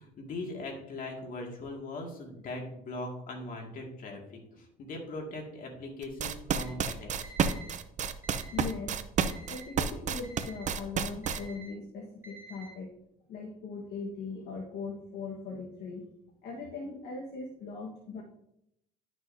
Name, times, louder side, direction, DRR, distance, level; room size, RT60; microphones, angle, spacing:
voice 1, 0.0-7.3, left 2 dB, 55° left, 1 dB, 2.1 m, -40 dB
sound 1, 6.0-11.4, right 7 dB, 45° right, 0.6 m, -30 dB
Alarm, 6.6-6.7 7.2-7.7 8.2-8.7 9.2-9.7 10.2-10.7 11.2-11.7 12.2-12.7, right 2 dB, 15° right, 2.4 m, -49 dB
voice 2, 8.5-9.1 9.5-13.0 13.3-16.1 16.4-18.2, left 4 dB, 70° left, -2 dB, 1.4 m, -40 dB
11.0 x 6.1 x 2.7 m, 0.76 s
cardioid pair, 110°, 17 cm